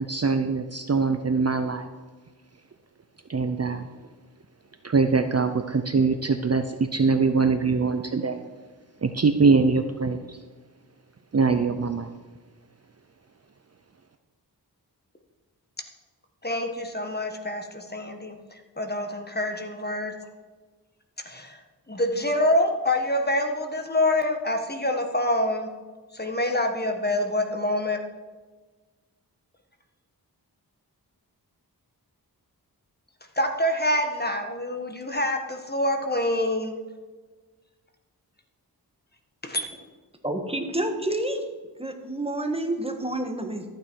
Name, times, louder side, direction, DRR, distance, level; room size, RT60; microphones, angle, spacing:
voice 1, 0.0-1.9 3.3-3.9 4.8-8.4 9.0-10.4 11.3-12.1, right 4 dB, 40° right, 8 dB, 0.7 m, -23 dB
voice 2, 16.4-18.3 18.8-20.1 21.2-21.6 21.9-25.7 26.1-28.0 33.4-36.7 39.4-39.6, left 1 dB, 25° left, 4 dB, 1.5 m, -26 dB
voice 3, 40.2-41.4 41.8-43.6, right 1 dB, 15° right, 5 dB, 1.6 m, -29 dB
13.5 x 9.1 x 4.7 m, 1.4 s
wide cardioid pair, 70°, 39 cm